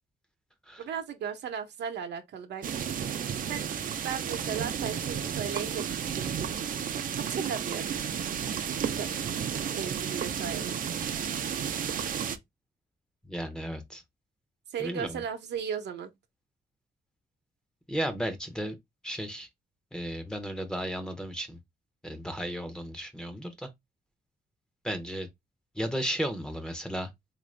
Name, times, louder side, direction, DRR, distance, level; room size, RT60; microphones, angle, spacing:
voice 1, 0.8-2.9 3.5-3.7 4.0-6.5 7.1-7.9 9.0-9.2 9.7-10.8 14.7-16.1, right 7 dB, 75° right, 0.8 m, -36 dB
sound 1, 2.6-12.4, right 8 dB, 50° right, 0.5 m, -32 dB
voice 2, 13.2-14.0 14.8-15.2 17.9-18.7 19.0-19.5 19.9-21.6 22.0-23.7 24.8-25.3 25.7-27.1, equal, 5° left, 0.7 m, -34 dB
3.9 x 2.6 x 3.2 m
wide cardioid pair, 145°, 18 cm